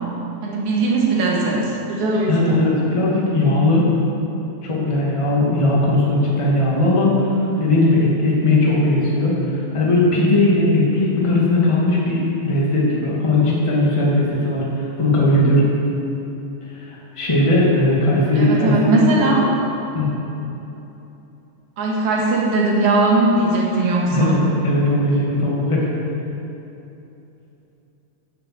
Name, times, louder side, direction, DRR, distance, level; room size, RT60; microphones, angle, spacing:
voice 1, 0.4-2.6 18.3-19.5 21.8-24.4, right 2 dB, 65° right, -4 dB, 3.1 m, -19 dB
voice 2, 2.3-3.9 4.6-7.3 7.6-15.7 16.7-16.8 17.2-19.0 19.9-20.1 24.1-25.9, left 2 dB, 15° left, -5 dB, 1.5 m, -18 dB
10.5 x 6.9 x 7.7 m, 3.0 s
omnidirectional pair, 3.7 m